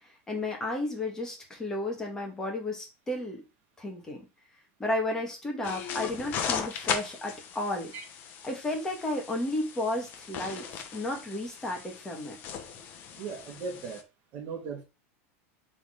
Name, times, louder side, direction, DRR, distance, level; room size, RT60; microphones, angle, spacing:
voice 1, 0.3-3.4 3.8-4.2 4.8-7.9 8.4-10.6 10.9-12.4, left 1 dB, 10° left, 1.8 m, -33 dB
sound 1, 5.6-14.0, left 7 dB, 25° left, 1.0 m, -38 dB
voice 2, 13.2-14.0 14.3-14.8, right 5 dB, 30° right, 2.3 m, -37 dB
7.0 x 4.0 x 5.0 m
supercardioid pair, 180°, 7 cm